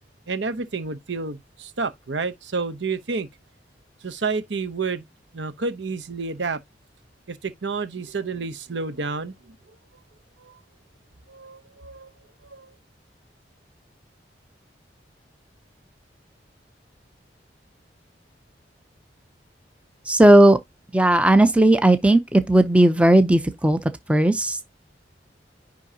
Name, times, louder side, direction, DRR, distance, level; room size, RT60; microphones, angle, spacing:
voice 1, 0.3-3.3 4.0-5.1 5.3-6.6 7.3-9.5 10.4-10.6 11.3-12.1 12.4-12.7, right 4 dB, 90° right, 0.9 m, -30 dB
voice 2, 20.1-20.6 20.9-23.8 24.1-24.6, right 1 dB, 5° right, 0.7 m, -16 dB
9.9 x 3.8 x 2.8 m
head